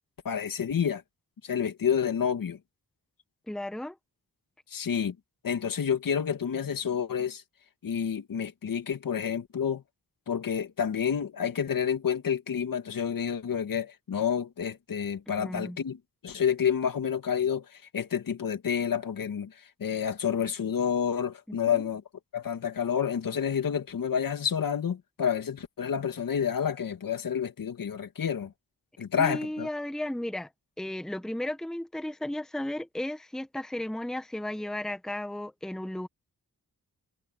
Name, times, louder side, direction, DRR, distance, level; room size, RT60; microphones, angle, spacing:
voice 1, 0.2-1.0 1.4-2.6 4.7-5.2 5.4-7.4 7.8-9.8 10.3-16.0 16.2-22.0 22.3-28.5 29.0-29.7, left 7 dB, 65° left, 2.2 m, -29 dB
voice 2, 3.5-4.0 15.4-15.8 21.5-21.8 29.2-30.5 30.8-36.1, left 1 dB, ahead, 1.0 m, -34 dB
wide cardioid pair, 100°, 35 cm